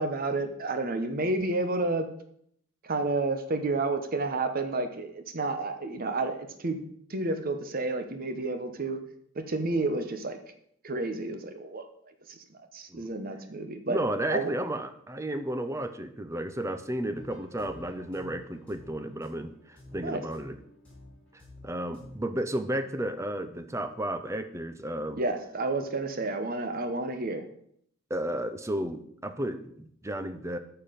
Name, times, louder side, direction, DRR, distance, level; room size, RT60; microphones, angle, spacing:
voice 1, 0.0-2.1 2.8-6.8 7.1-9.0 9.3-10.4 10.8-11.9 12.3-14.0 14.3-14.5 20.0-20.2 25.2-27.5, right 2 dB, 45° right, 8 dB, 1.0 m, -30 dB
voice 2, 13.9-20.5 21.3-25.2 28.1-30.6, right 1 dB, 15° right, 10 dB, 0.6 m, -33 dB
sound 1, 17.1-22.2, left 1 dB, 5° left, 3.9 m, -50 dB
8.8 x 5.8 x 5.1 m, 0.67 s
head